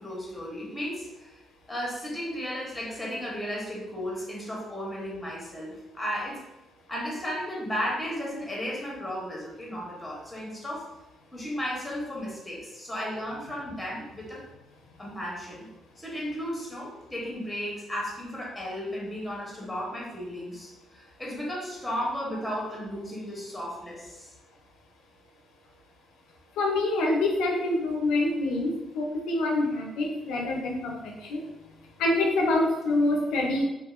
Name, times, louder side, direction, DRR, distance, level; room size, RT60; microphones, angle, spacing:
voice 1, 0.0-1.3 1.7-6.4 6.9-10.9 11.3-14.4 15.0-15.7 16.0-24.3, equal, 10° left, -4 dB, 0.9 m, -34 dB
voice 2, 26.6-31.4 32.0-33.6, left 2 dB, 85° left, 0 dB, 0.5 m, -26 dB
2.7 x 2.4 x 2.4 m, 0.95 s
cardioid pair, 90°, 0 cm